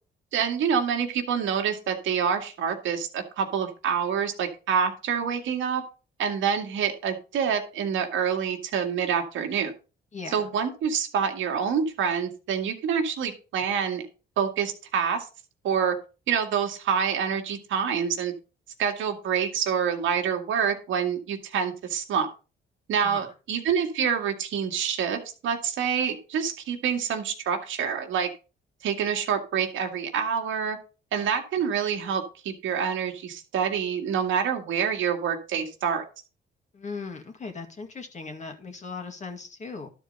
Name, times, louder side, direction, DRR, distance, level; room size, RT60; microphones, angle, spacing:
voice 1, 0.3-5.8 6.2-9.7 10.3-14.0 14.4-15.3 15.6-15.9 16.3-18.3 18.8-22.3 22.9-28.3 28.8-30.8 31.1-36.0, right 7 dB, 80° right, 4 dB, 1.8 m, -27 dB
voice 2, 36.7-39.9, left 4 dB, 35° left, 4 dB, 2.1 m, -38 dB
12.0 x 4.5 x 5.3 m, 0.34 s
cardioid pair, 90°, 20 cm